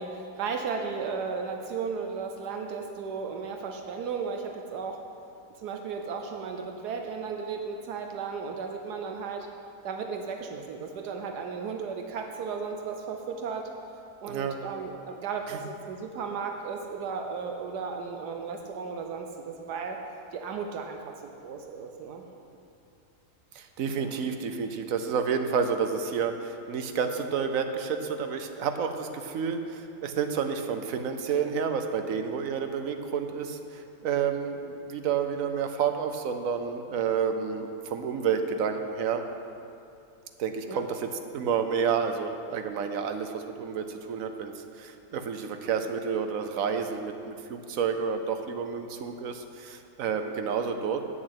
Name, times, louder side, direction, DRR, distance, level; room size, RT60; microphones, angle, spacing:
voice 1, 0.0-5.0 5.6-9.5 9.8-13.7 14.2-20.0 20.3-22.6 24.0-24.3 40.7-40.8, right 5 dB, 80° right, 4 dB, 1.3 m, -35 dB
voice 2, 14.3-14.6 15.5-15.6 23.5-39.2 40.4-51.0, right 6 dB, 60° right, 7 dB, 1.0 m, -30 dB
8.5 x 7.5 x 8.0 m, 2.6 s
omnidirectional pair, 1.7 m